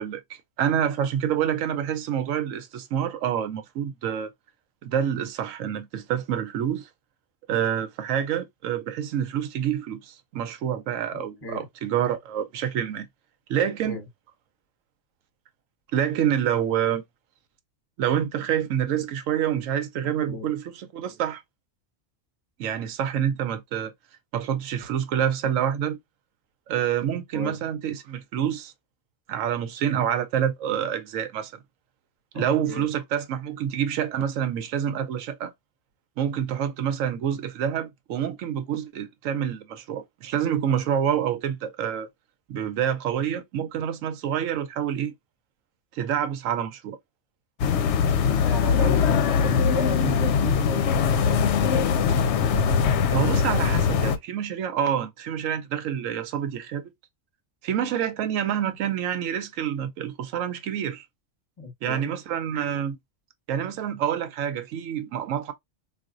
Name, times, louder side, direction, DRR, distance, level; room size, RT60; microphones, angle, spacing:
voice 1, 0.0-4.3 4.8-6.9 7.5-13.1 13.5-14.0 15.9-17.0 18.0-21.4 22.6-23.9 24.3-26.0 26.7-28.7 29.3-31.6 32.3-35.5 36.2-42.1 42.5-45.1 45.9-47.0 53.1-56.8 57.6-61.0 61.8-63.0 63.5-65.5, right 9 dB, 90° right, 1.0 m, -27 dB
voice 2, 11.1-11.7 13.8-14.0 20.0-20.5 27.3-27.6 32.3-32.9 48.4-51.4 61.6-62.1, left 2 dB, 20° left, 1.0 m, -33 dB
sound 1, 47.6-54.2, left 6 dB, 70° left, 0.8 m, -22 dB
4.1 x 2.4 x 2.4 m
omnidirectional pair, 1.3 m